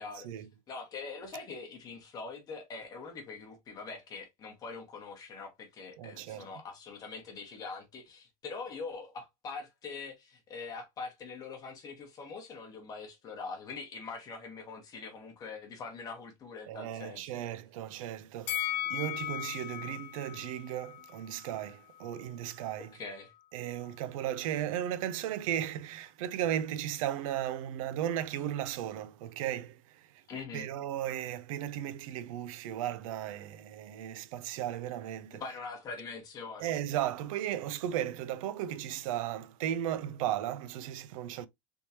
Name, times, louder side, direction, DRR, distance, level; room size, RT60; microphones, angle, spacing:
voice 1, 0.0-17.3 23.0-23.3 30.3-30.7 35.3-36.7, left 4 dB, 20° left, 1.0 m, -43 dB
voice 2, 6.0-6.5 16.7-22.9 23.5-30.1 30.5-35.4 36.6-41.5, right 11 dB, 85° right, 0.5 m, -35 dB
Bell, 18.5-21.7 22.0-22.1, left 13 dB, 50° left, 0.6 m, -37 dB
3.5 x 3.0 x 2.7 m
supercardioid pair, 175°, 17 cm